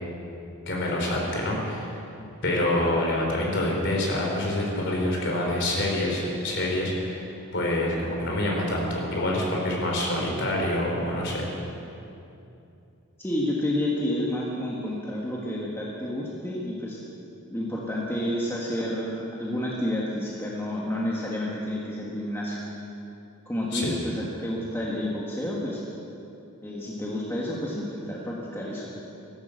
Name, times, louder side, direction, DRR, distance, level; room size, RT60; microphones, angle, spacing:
voice 1, 0.7-1.9 2.4-7.3 7.5-11.5 23.7-23.9, left 1 dB, 50° left, -1 dB, 3.7 m, -26 dB
voice 2, 13.2-17.0 17.5-22.6 23.4-25.8 26.6-28.9, left 1 dB, 10° left, -4 dB, 1.6 m, -30 dB
15.0 x 12.0 x 7.8 m, 2.7 s
head